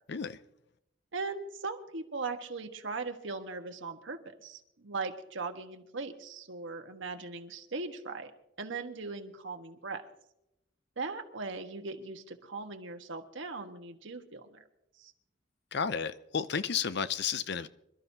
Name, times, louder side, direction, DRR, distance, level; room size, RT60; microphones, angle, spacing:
voice 1, 1.1-8.3 8.6-10.0 11.0-14.6 15.0-15.1, right 4 dB, 75° right, 5 dB, 1.4 m, -39 dB
voice 2, 15.7-17.7, left 6 dB, 60° left, 13 dB, 0.6 m, -32 dB
26.5 x 12.5 x 2.8 m, 0.83 s
head